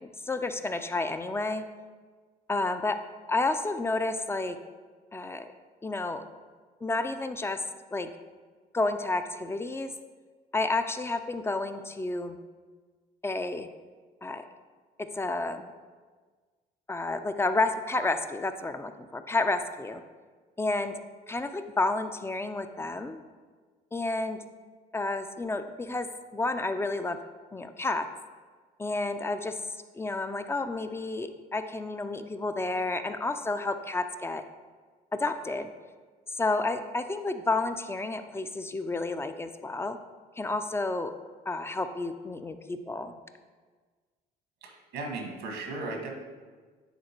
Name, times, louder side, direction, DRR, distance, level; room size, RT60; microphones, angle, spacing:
voice 1, 0.0-1.6 2.5-3.0 3.3-4.6 5.1-5.5 5.8-6.2 6.8-7.6 7.9-8.1 8.7-9.9 10.5-12.4 13.2-13.7 14.2-14.4 15.1-15.7 16.9-20.0 20.6-21.0 21.3-23.2 23.9-24.4 24.9-27.2 27.5-28.1 28.8-29.6 29.9-34.4 35.1-35.7 36.4-40.0 40.4-41.1 41.5-43.2, left 2 dB, 15° left, 9 dB, 0.4 m, -30 dB
voice 2, 44.6-46.1, right 3 dB, 85° right, 1 dB, 1.5 m, -36 dB
9.4 x 3.9 x 4.4 m, 1.4 s
cardioid pair, 110°, 17 cm